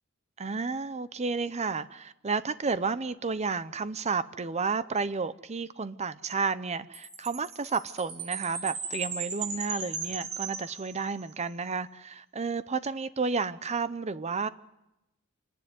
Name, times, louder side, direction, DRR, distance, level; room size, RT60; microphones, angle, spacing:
voice 1, 0.4-14.5, right 4 dB, 30° right, 0.7 m, -31 dB
Chime, 6.9-11.4, right 5 dB, 85° right, 3.2 m, -37 dB
27.0 x 11.0 x 9.6 m
head